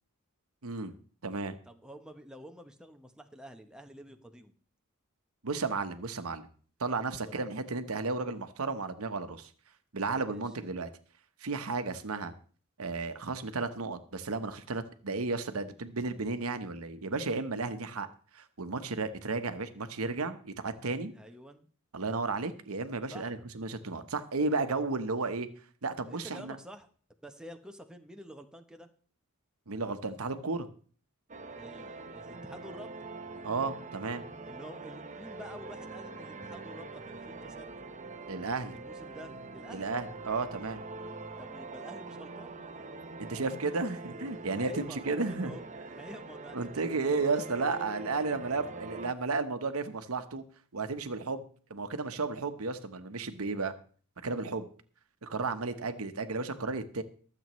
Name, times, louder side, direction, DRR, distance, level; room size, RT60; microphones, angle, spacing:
voice 1, 0.6-0.9 1.2-1.6 5.4-6.5 6.8-9.5 9.9-10.9 11.4-12.3 12.8-18.1 18.3-21.1 21.9-25.5 25.8-26.6 29.7-30.7 33.4-34.2 38.3-38.8 39.7-40.8 43.2-45.6 46.5-50.4 50.7-51.4 51.7-53.7 54.2-54.7 55.2-57.0, right 3 dB, 90° right, 9 dB, 1.0 m, -33 dB
voice 2, 1.7-4.5 7.2-7.4 10.2-10.4 21.1-21.7 23.1-23.4 26.1-26.9 27.2-28.9 31.6-33.1 34.4-37.7 38.7-39.9 41.4-42.5 44.5-45.6 45.9-47.2 47.7-47.8, equal, 5° right, 5 dB, 0.9 m, -49 dB
sound 1, 31.3-49.1, right 3 dB, 35° right, 0.8 m, -44 dB
23.0 x 7.9 x 3.1 m, 0.43 s
head